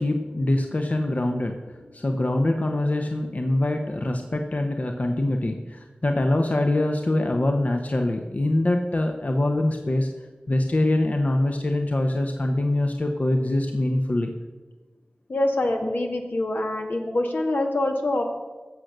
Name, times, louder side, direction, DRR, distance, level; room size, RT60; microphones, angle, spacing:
voice 1, 0.0-10.1 10.5-14.3, left 1 dB, 50° left, 4 dB, 0.9 m, -24 dB
voice 2, 15.3-18.2, left 1 dB, 80° left, 2 dB, 1.9 m, -25 dB
16.5 x 6.6 x 6.6 m, 1.3 s
wide cardioid pair, 55°, 3 cm